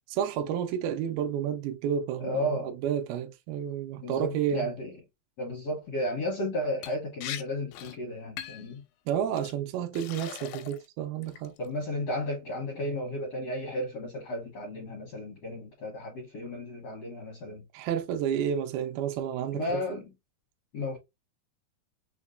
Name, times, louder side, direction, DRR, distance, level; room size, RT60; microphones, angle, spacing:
voice 1, 0.1-4.7 9.1-11.5 17.7-19.8, right 9 dB, 80° right, 2.4 m, -31 dB
voice 2, 2.2-2.7 4.0-4.9 5.4-8.8 11.6-17.6 19.5-20.1 20.7-21.0, left 1 dB, 75° left, 1.5 m, -33 dB
Liquid, 6.8-7.0 7.2-7.4 7.7-8.0 8.4-8.7 9.4-9.5 9.9-10.9 11.2-11.7, left 11 dB, 90° left, 2.5 m, -40 dB
5.9 x 2.2 x 2.5 m
omnidirectional pair, 4.5 m